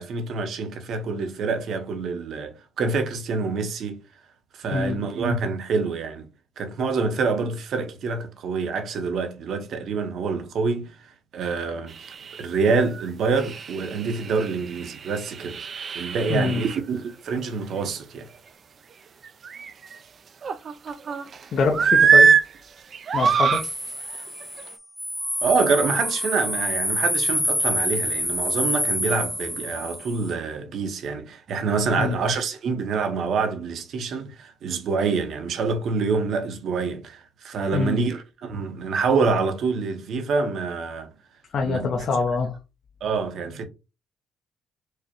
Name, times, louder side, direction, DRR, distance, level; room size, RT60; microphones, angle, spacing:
voice 1, 0.0-4.0 4.5-6.3 6.6-10.9 11.3-11.9 12.4-15.6 15.9-18.3 25.4-41.1 41.6-41.9 43.0-43.6, right 4 dB, 55° right, 0.8 m, -26 dB
voice 2, 4.7-5.0 16.3-16.6 21.5-22.3 23.1-23.6 32.0-32.2 37.7-38.0 41.5-42.6, left 4 dB, 50° left, 0.6 m, -24 dB
sound 1, 12.0-12.4 12.9-13.1 13.4-16.8 19.2-20.0 20.4-21.4 21.7-22.5 22.9-23.7 24.4-24.6, right 6 dB, 40° right, 0.3 m, -22 dB
sound 2, 23.5-30.3, equal, ahead, 0.6 m, -27 dB
4.7 x 2.1 x 2.9 m
cardioid pair, 125°, 0 cm